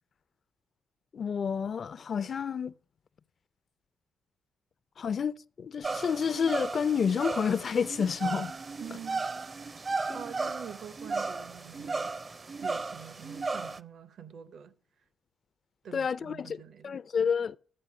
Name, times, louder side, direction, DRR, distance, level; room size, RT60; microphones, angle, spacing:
voice 1, 1.1-2.7 5.0-8.5 10.1-10.2 15.9-17.6, left 6 dB, 45° left, 0.4 m, -30 dB
sound 1, 5.8-13.8, right 3 dB, 30° right, 0.5 m, -35 dB
voice 2, 8.8-9.3 10.1-12.1 12.6-14.7 15.8-17.0, right 8 dB, 65° right, 0.7 m, -46 dB
13.0 x 8.2 x 4.8 m
cardioid pair, 90°, 0 cm